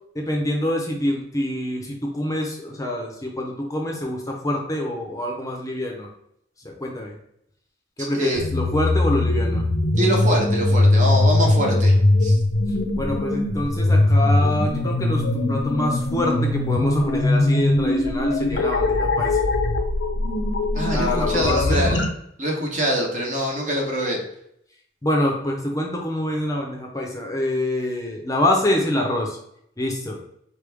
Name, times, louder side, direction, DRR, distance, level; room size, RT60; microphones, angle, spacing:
voice 1, 0.1-6.1 6.6-7.1 8.0-9.7 13.0-19.4 20.9-21.9 25.0-29.4 29.8-30.2, left 1 dB, 20° left, 1 dB, 0.6 m, -25 dB
voice 2, 8.0-8.4 9.9-12.4 20.7-22.0 22.4-24.2, equal, 45° right, 0 dB, 1.1 m, -24 dB
sound 1, 8.4-22.1, left 2 dB, 75° left, 0.6 m, -20 dB
4.4 x 3.4 x 3.4 m, 0.73 s
head